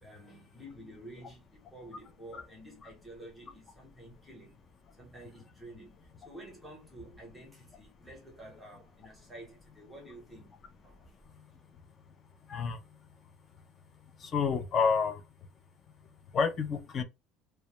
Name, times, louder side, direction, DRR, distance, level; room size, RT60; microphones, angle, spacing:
voice 1, 0.0-4.6 5.0-10.6 10.8-11.2, right 1 dB, 5° right, 0.8 m, -50 dB
voice 2, 14.2-15.2 16.3-17.0, left 5 dB, 25° left, 0.3 m, -29 dB
2.1 x 2.0 x 2.8 m
cardioid pair, 175°, 0 cm